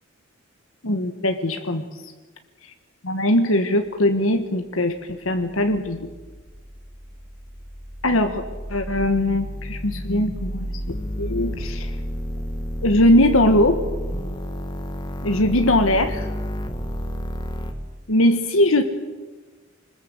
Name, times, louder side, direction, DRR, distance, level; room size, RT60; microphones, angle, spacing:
voice 1, 0.8-1.8 3.0-4.9 5.2-6.1 8.0-8.4 8.7-10.6 10.9-11.9 12.8-13.8 15.2-16.3 18.1-18.8, left 1 dB, 75° left, 6 dB, 1.6 m, -20 dB
sound 1, 4.7-17.7, equal, 20° left, 1.8 m, -31 dB
25.5 x 20.5 x 8.2 m, 1.3 s
head